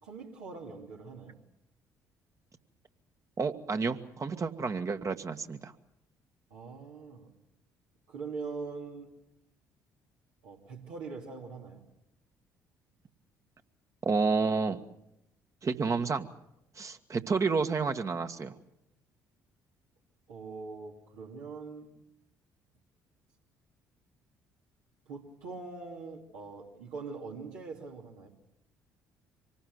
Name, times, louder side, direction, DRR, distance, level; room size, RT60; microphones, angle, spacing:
voice 1, 0.0-1.4 6.5-7.3 8.1-9.1 10.4-11.8 20.3-21.9 25.1-28.3, right 4 dB, 75° right, -2 dB, 3.0 m, -42 dB
voice 2, 3.4-5.7 14.0-14.8 15.6-16.3 16.8-18.5, right 4 dB, 35° right, 7 dB, 1.7 m, -30 dB
26.0 x 19.0 x 8.0 m, 0.85 s
figure-of-eight pair, 50°, 9 cm